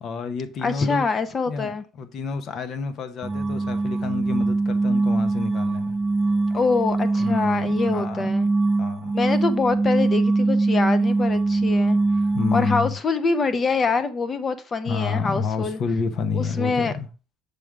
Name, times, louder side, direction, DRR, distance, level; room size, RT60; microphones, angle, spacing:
voice 1, 0.0-1.0 1.5-6.0 7.2-8.3 8.8-9.1 12.3-12.9 14.9-17.1, left 5 dB, 50° left, 1.0 m, -29 dB
voice 2, 0.6-1.8 6.5-8.5 9.1-12.0 12.5-15.8 16.3-16.9, left 4 dB, 30° left, 0.7 m, -25 dB
sound 1, 3.2-12.9, right 3 dB, 20° right, 0.5 m, -22 dB
6.8 x 3.8 x 4.7 m
supercardioid pair, 105°, 0 cm